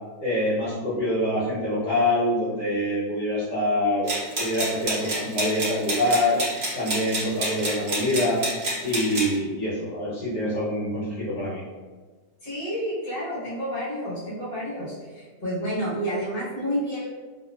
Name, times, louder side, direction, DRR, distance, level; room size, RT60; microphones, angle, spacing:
voice 1, 0.2-6.4 6.7-8.4 8.8-11.6, left 1 dB, 70° left, -12 dB, 1.7 m, -25 dB
sound 1, 4.1-9.3, right 1 dB, 45° right, 0.9 m, -28 dB
voice 2, 12.4-17.1, equal, 30° left, -10 dB, 1.5 m, -30 dB
3.1 x 2.9 x 2.4 m, 1.4 s
omnidirectional pair, 1.9 m